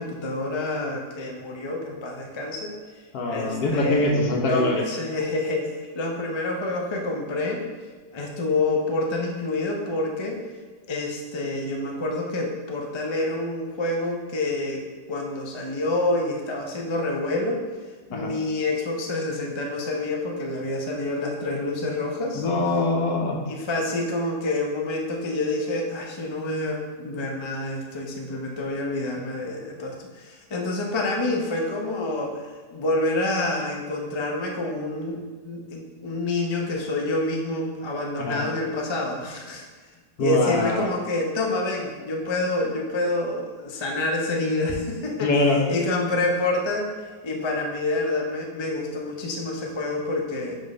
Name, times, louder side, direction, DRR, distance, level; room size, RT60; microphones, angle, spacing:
voice 1, 0.0-2.7 3.3-4.1 4.5-7.6 8.1-10.4 10.9-14.8 15.1-17.7 18.1-22.4 23.5-32.4 32.7-39.6 40.2-45.3 45.7-46.9 47.2-50.6, left 2 dB, 45° left, 0 dB, 0.3 m, -27 dB
voice 2, 3.1-4.8 18.1-18.3 22.3-23.4 38.2-38.4 40.2-40.9 45.2-45.6, left 2 dB, 70° left, 1 dB, 1.3 m, -23 dB
5.5 x 3.6 x 5.2 m, 1.4 s
omnidirectional pair, 1.8 m